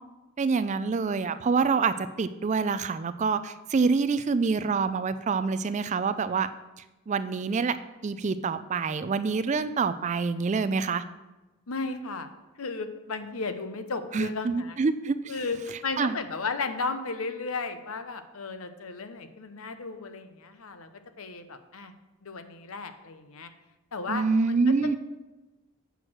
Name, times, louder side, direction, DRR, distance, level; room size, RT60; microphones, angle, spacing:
voice 1, 0.4-6.5 7.1-7.8 8.0-11.0 14.1-15.4 16.0-16.1 24.1-25.0, right 4 dB, 30° right, 13 dB, 0.3 m, -26 dB
voice 2, 11.7-12.3 12.6-14.8 15.3-20.9 21.2-21.9 22.2-23.5 23.9-25.0, left 4 dB, 70° left, 9 dB, 0.8 m, -34 dB
8.1 x 6.1 x 6.2 m, 1.1 s
head